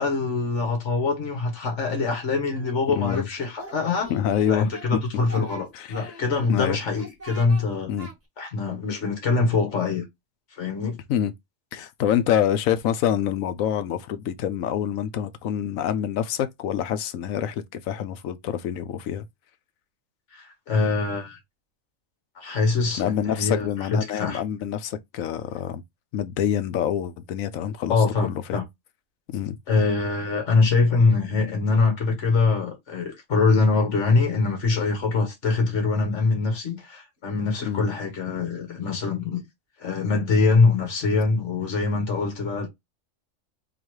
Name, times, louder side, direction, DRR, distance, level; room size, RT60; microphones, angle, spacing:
voice 1, 0.0-4.1 4.5-7.9 8.4-10.1 10.6-11.0 20.3-21.4 22.4-24.4 27.9-28.6 29.7-39.4 39.8-42.7, left 4 dB, 60° left, 1.8 m, -23 dB
Singing, 2.5-3.3 3.6-4.9 5.2-6.5 6.9-7.6 8.0-8.1, right 2 dB, 10° right, 1.1 m, -43 dB
voice 2, 2.9-3.3 4.1-5.0 5.4-5.5 5.7-6.1 6.5-6.8 7.9-8.1 11.1-11.3 11.7-19.3 23.0-25.8 26.1-28.0 28.2-28.6 29.3-29.6 37.6-37.9, left 9 dB, 90° left, 1.0 m, -26 dB
4.0 x 3.0 x 3.0 m
omnidirectional pair, 1.4 m